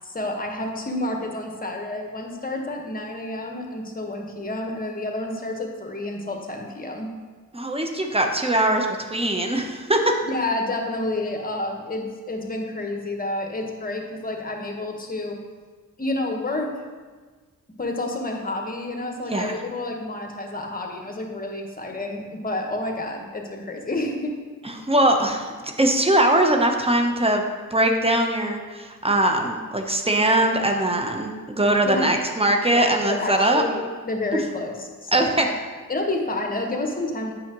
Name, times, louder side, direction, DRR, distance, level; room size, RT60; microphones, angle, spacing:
voice 1, 0.0-7.1 10.2-15.4 16.0-16.7 17.8-24.4 31.8-32.1 32.7-35.5 35.9-37.3, left 2 dB, 25° left, 2 dB, 1.3 m, -29 dB
voice 2, 7.5-10.2 19.3-19.5 24.8-25.5 25.8-27.4 27.7-33.6 35.1-35.5, right 1 dB, 15° right, 3 dB, 0.9 m, -21 dB
8.4 x 5.7 x 3.0 m, 1.4 s
cardioid pair, 60°, 33 cm